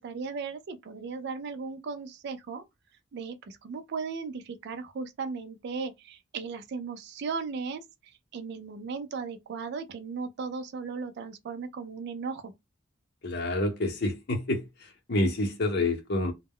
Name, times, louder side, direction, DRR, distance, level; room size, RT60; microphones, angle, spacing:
voice 1, 0.0-2.6 3.1-12.5, right 5 dB, 60° right, 0.4 m, -36 dB
voice 2, 13.2-14.6 15.1-16.3, left 2 dB, 60° left, 0.8 m, -27 dB
2.2 x 2.1 x 3.5 m
head